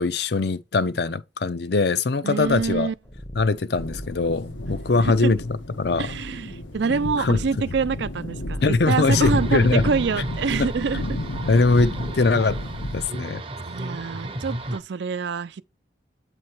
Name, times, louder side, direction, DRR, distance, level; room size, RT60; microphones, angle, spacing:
voice 1, 0.0-2.9 3.3-5.4 5.8-6.1 7.2-7.4 8.6-9.8 10.6-10.7 11.4-12.6 12.9-13.4, left 3 dB, 60° left, 0.5 m, -21 dB
voice 2, 2.2-2.9 5.0-5.3 6.0-11.2 13.7-15.6, right 5 dB, 70° right, 0.4 m, -26 dB
sound 1, 2.4-12.9, left 1 dB, 20° left, 0.6 m, -43 dB
sound 2, 3.8-13.1, left 1 dB, 85° left, 1.0 m, -32 dB
sound 3, 9.0-14.8, right 1 dB, 30° right, 0.6 m, -33 dB
8.6 x 3.1 x 4.5 m
head